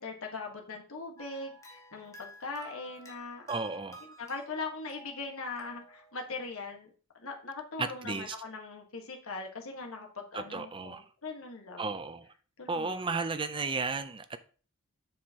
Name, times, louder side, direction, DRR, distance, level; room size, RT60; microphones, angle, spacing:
voice 1, 0.0-3.4 4.2-11.9 12.6-13.1, left 3 dB, 70° left, 1.4 m, -41 dB
sound 1, 1.2-6.3, equal, 15° left, 1.2 m, -53 dB
voice 2, 3.5-4.0 7.8-8.4 10.3-11.0 11.8-12.2 12.7-14.4, right 4 dB, 25° right, 0.5 m, -34 dB
7.5 x 6.5 x 2.9 m
head